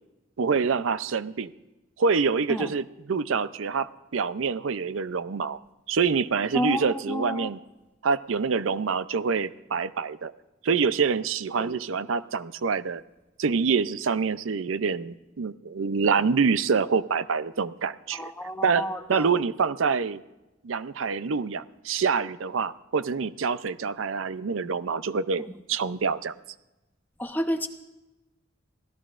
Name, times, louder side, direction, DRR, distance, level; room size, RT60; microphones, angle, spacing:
voice 1, 0.4-1.5 2.0-5.6 5.9-7.6 8.0-10.3 10.6-13.0 13.4-18.3 18.6-20.2 20.6-26.3, right 5 dB, 80° right, 15 dB, 0.5 m, -26 dB
voice 2, 6.5-7.5 11.6-11.7 18.2-19.2 27.2-27.7, equal, 10° left, 6 dB, 0.8 m, -30 dB
24.5 x 16.5 x 2.5 m, 1.0 s
head